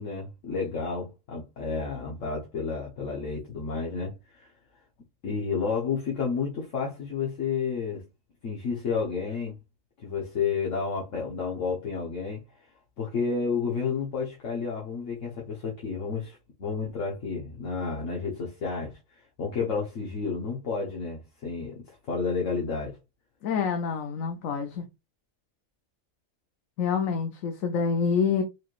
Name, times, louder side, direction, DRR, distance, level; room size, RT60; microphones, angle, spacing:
voice 1, 0.0-4.5 5.2-8.0 8.4-9.6 10.0-12.4 13.0-23.0, left 5 dB, 70° left, 1.4 m, -31 dB
voice 2, 23.4-24.8 26.8-28.4, left 6 dB, 90° left, 1.1 m, -27 dB
4.8 x 3.1 x 2.4 m
omnidirectional pair, 1.4 m